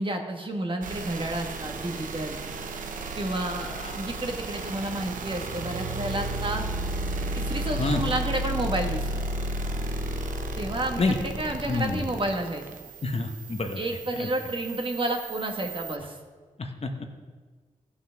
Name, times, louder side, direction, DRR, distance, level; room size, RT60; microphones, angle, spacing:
voice 1, 0.0-2.4 3.2-3.7 3.9-6.6 7.3-9.2 10.6-12.7 13.8-16.2, right 1 dB, 40° right, 2 dB, 1.8 m, -31 dB
sound 1, 0.8-16.0, right 2 dB, 85° right, 0.8 m, -33 dB
voice 2, 11.7-12.0 13.0-13.8 14.2-14.3 16.6-17.1, left 3 dB, 50° left, 5 dB, 1.2 m, -28 dB
14.5 x 6.1 x 5.9 m, 1.4 s
cardioid pair, 50°, 13 cm